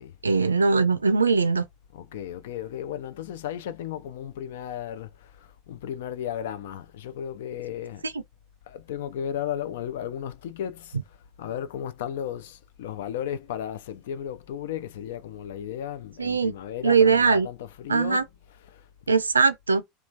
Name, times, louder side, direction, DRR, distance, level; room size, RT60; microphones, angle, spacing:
voice 1, 0.2-1.7 16.2-16.5 16.8-17.5 17.9-18.2 19.1-19.8, right 5 dB, 90° right, 0.3 m, -20 dB
voice 2, 1.9-8.0 8.7-18.9, left 10 dB, 70° left, 0.4 m, -35 dB
3.0 x 2.3 x 2.6 m
hypercardioid pair, 80°, 0 cm